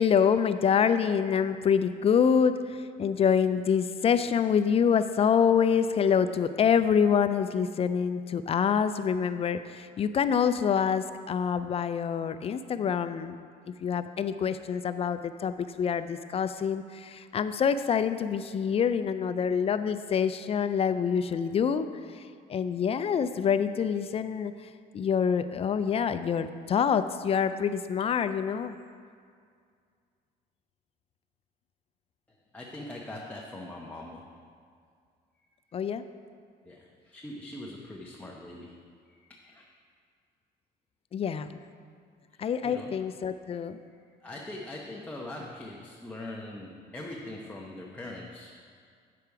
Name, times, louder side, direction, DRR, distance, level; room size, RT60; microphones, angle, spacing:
voice 1, 0.0-2.6 3.0-13.3 13.8-21.9 22.5-24.5 24.9-28.8 35.7-36.0 41.1-41.6 42.4-43.8, left 7 dB, 35° left, 11 dB, 0.4 m, -26 dB
voice 2, 32.3-34.4 35.4-35.7 36.6-38.8 39.1-39.7 42.3-43.0 43.5-44.0 44.2-48.5, left 1 dB, 10° left, -3 dB, 0.8 m, -42 dB
8.5 x 6.7 x 4.7 m, 2.2 s
cardioid pair, 110°, 17 cm